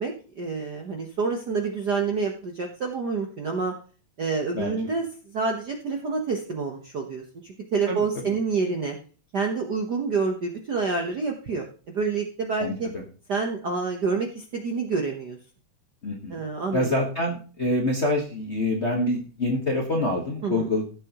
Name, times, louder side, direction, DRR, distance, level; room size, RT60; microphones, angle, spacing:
voice 1, 0.0-3.7 4.2-9.0 9.3-12.9 13.3-15.4 16.3-16.9 20.4-20.7, right 4 dB, 55° right, 3 dB, 1.1 m, -28 dB
voice 2, 12.6-13.0 16.0-16.4 16.7-20.8, left 1 dB, 40° left, -1 dB, 1.0 m, -26 dB
15.5 x 7.4 x 3.0 m, 0.39 s
omnidirectional pair, 3.3 m